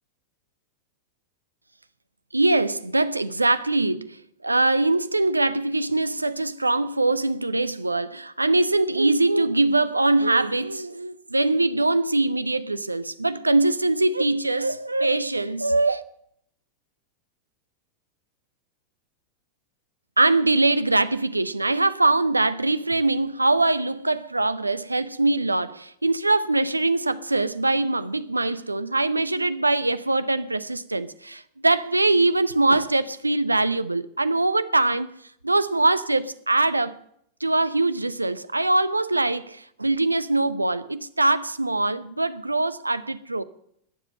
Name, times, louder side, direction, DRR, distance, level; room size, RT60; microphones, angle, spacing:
voice 1, 2.3-16.0 20.2-35.1 35.4-37.0 37.4-43.4, right 2 dB, 85° right, 0.6 m, -22 dB
20.5 x 7.4 x 6.6 m
figure-of-eight pair, 90°, 0 cm